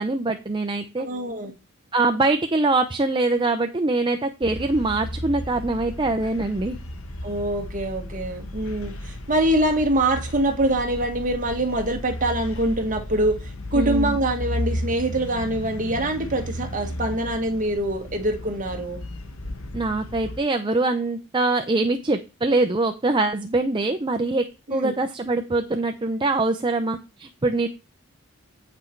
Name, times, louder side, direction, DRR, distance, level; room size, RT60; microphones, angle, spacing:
voice 1, 0.0-1.1 1.9-6.8 13.7-14.2 19.7-24.4 24.7-27.7, right 2 dB, 25° right, 0.6 m, -23 dB
voice 2, 1.0-1.5 7.2-19.0 24.8-24.9, right 1 dB, 40° right, 1.8 m, -24 dB
sound 1, 4.4-20.4, left 1 dB, 85° left, 1.2 m, -34 dB
8.6 x 6.0 x 4.5 m
head